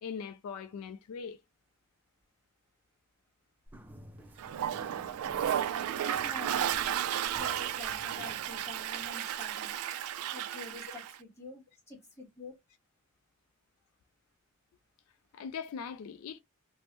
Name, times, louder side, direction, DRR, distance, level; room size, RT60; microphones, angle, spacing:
voice 1, 0.0-1.4 10.3-10.6 15.3-16.4, left 6 dB, 80° left, 0.3 m, -41 dB
sound 1, 3.7-9.1, equal, 10° right, 0.4 m, -53 dB
Toilet flush, 4.4-11.2, right 10 dB, 85° right, 0.3 m, -33 dB
voice 2, 5.8-7.0 7.4-9.7 10.3-12.6, left 3 dB, 15° left, 1.5 m, -48 dB
3.2 x 2.0 x 2.9 m
head